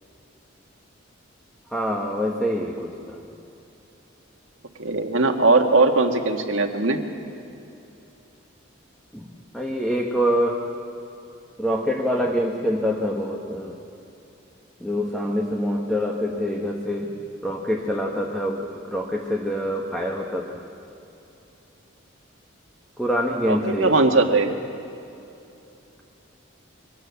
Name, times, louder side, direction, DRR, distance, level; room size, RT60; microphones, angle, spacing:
voice 1, 1.7-2.9 9.1-10.6 11.6-13.8 14.8-17.2 17.4-20.7 23.0-23.9, equal, ahead, -1 dB, 1.3 m, -25 dB
voice 2, 4.8-7.0 23.5-24.6, right 3 dB, 80° right, 4 dB, 1.7 m, -19 dB
24.0 x 18.0 x 7.1 m, 2.9 s
head